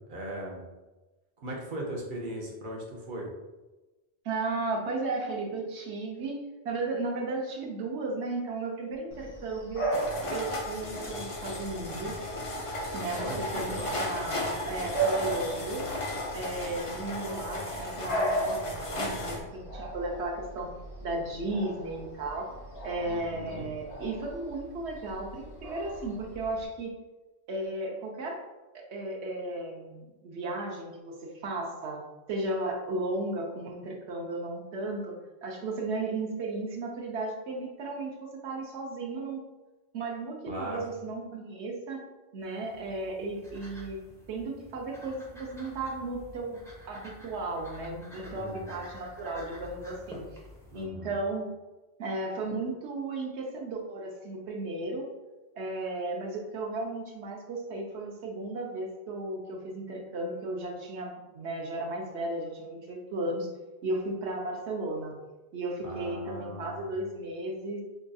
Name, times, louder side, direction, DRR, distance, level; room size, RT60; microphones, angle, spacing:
voice 1, 0.1-0.7 1.4-3.3 13.1-13.9 23.0-23.6 40.5-40.8 48.3-48.8 50.7-51.2 65.8-66.8, right 1 dB, 55° right, -2 dB, 0.9 m, -38 dB
voice 2, 4.2-9.8 10.3-12.2 12.9-13.3 13.5-15.8 16.3-20.7 21.0-22.5 22.8-26.9 27.5-28.4 28.7-32.0 32.3-39.4 39.9-42.0 42.3-44.0 44.3-46.6 46.9-50.2 50.7-51.5 52.0-55.1 55.6-63.5 63.8-65.2 65.5-67.8, right 2 dB, 90° right, 0 dB, 1.0 m, -35 dB
Bark / Bird vocalization bird call bird song, 9.1-26.7, right 2 dB, 70° left, 1.3 m, -37 dB
sound 1, 9.9-19.4, left 1 dB, 45° left, 0.4 m, -35 dB
sound 2, 42.4-50.8, left 1 dB, 5° left, 0.6 m, -49 dB
5.1 x 2.5 x 2.3 m, 1.1 s
omnidirectional pair, 1.1 m